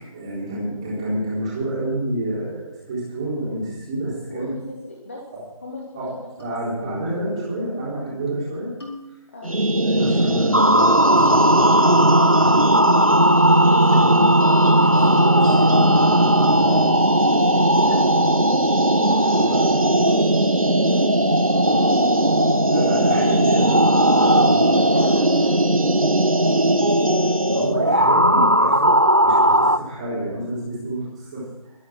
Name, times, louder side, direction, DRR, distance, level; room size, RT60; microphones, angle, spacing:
voice 1, 0.1-4.5 5.9-6.1 6.4-8.7 9.8-12.8 13.2-14.3 14.8-17.2 19.3-19.6 22.7-24.7 27.4-28.9 29.2-31.7, right 1 dB, 10° right, -7 dB, 3.9 m, -29 dB
voice 2, 4.3-5.2 5.6-6.3 9.3-9.5 17.4-22.7 24.5-27.4, left 2 dB, 20° left, -1 dB, 1.7 m, -39 dB
sound 1, 6.4-6.5 7.1-7.3 7.6-7.7 8.1-8.4 8.8-9.5 10.6-11.2 11.6-11.9 12.5-12.7 13.7-14.3 14.6-15.3 15.7-15.8 16.1-16.3 16.7-16.8 17.3-17.6 17.9-18.3, left 1 dB, 45° left, 3.7 m, -39 dB
sound 2, 9.4-27.7, right 1 dB, 75° right, 1.6 m, -19 dB
sound 3, 10.5-29.8, equal, 30° right, 0.5 m, -20 dB
24.0 x 9.7 x 4.6 m, 0.98 s
figure-of-eight pair, 165°, 18 cm